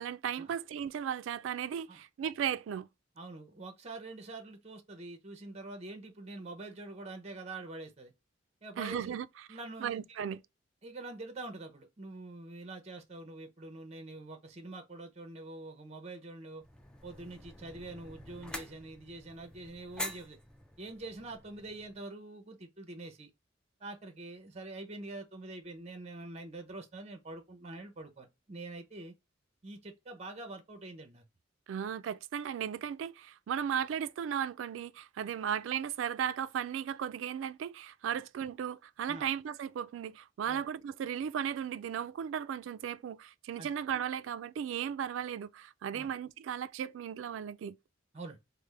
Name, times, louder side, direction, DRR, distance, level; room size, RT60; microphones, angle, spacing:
voice 1, 0.0-2.9 8.8-9.3 9.8-10.4 31.7-47.8, right 8 dB, 80° right, 0.3 m, -36 dB
voice 2, 3.2-8.1 8.6-9.2 9.5-10.2 10.8-16.6 17.0-20.4 20.8-23.3 23.8-29.1 29.6-31.2 39.1-39.2 40.5-40.6 43.6-43.7 45.9-46.1 48.1-48.4, right 2 dB, 35° right, 0.7 m, -45 dB
sound 1, 16.6-22.0, equal, 5° left, 0.4 m, -46 dB
3.4 x 2.0 x 3.2 m
head